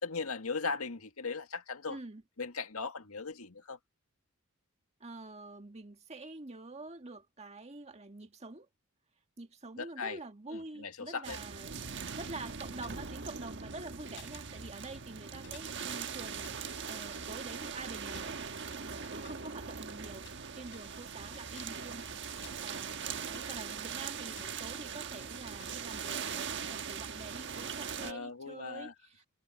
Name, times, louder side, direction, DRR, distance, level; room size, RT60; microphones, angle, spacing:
voice 1, 0.0-2.0 2.4-3.8 9.8-10.2 10.5-11.4 28.0-28.9, left 4 dB, 85° left, 2.0 m, -38 dB
voice 2, 1.9-2.2 5.0-8.7 9.4-11.7 12.1-16.6 16.9-20.3 20.5-23.0 23.3-29.3, right 2 dB, 30° right, 1.8 m, -47 dB
sound 1, 11.2-28.1, right 6 dB, 55° right, 1.4 m, -41 dB
sound 2, 12.7-13.8 14.1-15.1 15.4-17.5 18.1-20.4 20.7-26.5, left 9 dB, 60° left, 4.9 m, -60 dB
head